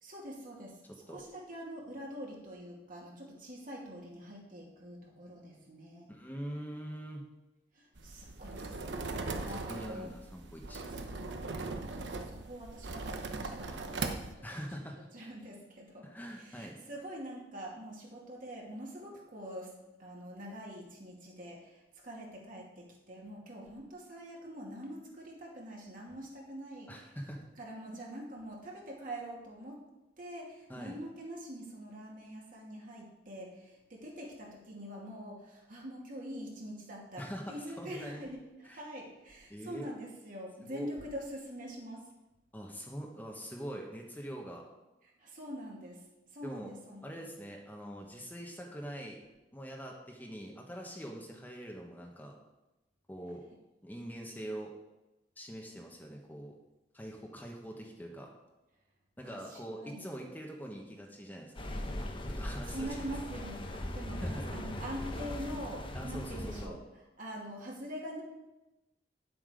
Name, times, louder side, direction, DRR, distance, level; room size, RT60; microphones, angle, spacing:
voice 1, 0.0-0.8 1.1-6.1 7.7-9.2 9.4-10.1 11.0-11.3 11.7-14.5 15.1-16.1 16.3-19.7 20.0-26.9 27.6-29.8 30.2-42.0 45.2-47.1 59.2-60.1 62.2-62.4 62.7-66.8 67.2-68.2, equal, 50° right, -2 dB, 2.5 m, -45 dB
voice 2, 0.9-1.2 6.1-7.2 9.5-10.8 14.4-15.0 16.0-16.8 26.9-27.5 27.9-28.0 30.7-31.0 37.2-38.3 38.6-38.8 39.5-39.9 40.6-40.9 42.5-44.6 46.4-46.7 47.0-49.2 49.5-52.4 53.1-53.4 53.8-54.7 55.4-56.5 56.9-58.3 59.2-61.7 62.3-63.1 64.1-64.4 65.9-66.8, equal, 10° left, 0 dB, 1.2 m, -43 dB
sound 1, 8.0-14.3, right 3 dB, 75° right, 0.9 m, -39 dB
sound 2, 61.6-66.7, left 1 dB, 30° left, 1.0 m, -39 dB
10.0 x 7.7 x 5.1 m, 1.0 s
head